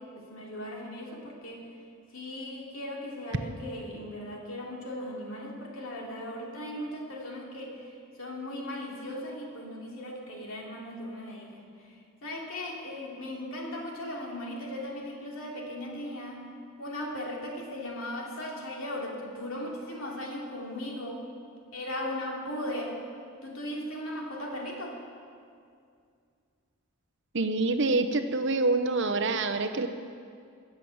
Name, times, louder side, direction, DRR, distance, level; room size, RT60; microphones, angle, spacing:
voice 1, 0.0-1.6 2.1-7.8 8.2-11.6 12.2-16.5 16.8-21.2 21.7-23.0 23.4-25.0, left 1 dB, 65° left, -2 dB, 3.0 m, -37 dB
voice 2, 27.3-29.9, right 3 dB, 55° right, 8 dB, 0.8 m, -26 dB
22.5 x 7.8 x 7.2 m, 2.3 s
head